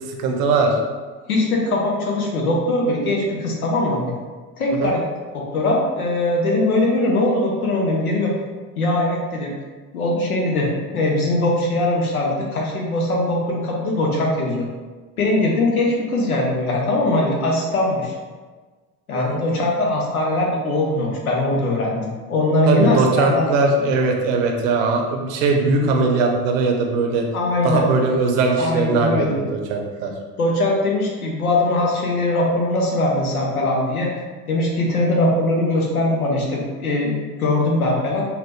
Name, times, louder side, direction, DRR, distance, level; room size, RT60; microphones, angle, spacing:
voice 1, 0.1-0.8 4.7-4.9 19.1-19.4 22.7-27.3 27.6-30.1, right 3 dB, 65° right, 2 dB, 0.7 m, -20 dB
voice 2, 1.3-4.1 4.6-5.0 5.3-8.3 8.8-9.5 9.9-14.7 15.2-18.1 19.1-23.5 27.3-27.9 28.6-29.4 30.4-34.1 34.5-38.3, left 1 dB, 90° left, -1 dB, 0.6 m, -21 dB
2.8 x 2.2 x 3.4 m, 1.4 s
figure-of-eight pair, 65°, 42 cm